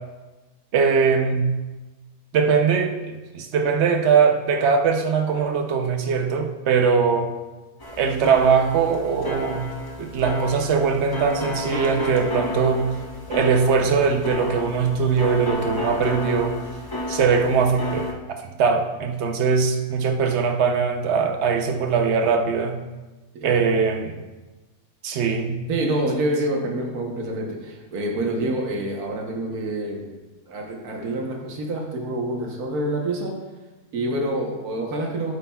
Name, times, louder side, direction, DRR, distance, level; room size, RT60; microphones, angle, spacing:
voice 1, 0.7-1.5 2.3-7.3 8.0-9.7 10.0-12.9 13.3-16.6 17.1-22.8 23.4-24.2 25.0-25.6, right 5 dB, 55° right, 5 dB, 0.9 m, -21 dB
sound 1, 7.8-18.1, left 2 dB, 25° left, 0.5 m, -31 dB
voice 2, 25.7-30.1 30.5-33.3 33.9-35.4, right 1 dB, 80° right, 0 dB, 1.6 m, -27 dB
10.5 x 8.3 x 2.3 m, 1.2 s
omnidirectional pair, 1.6 m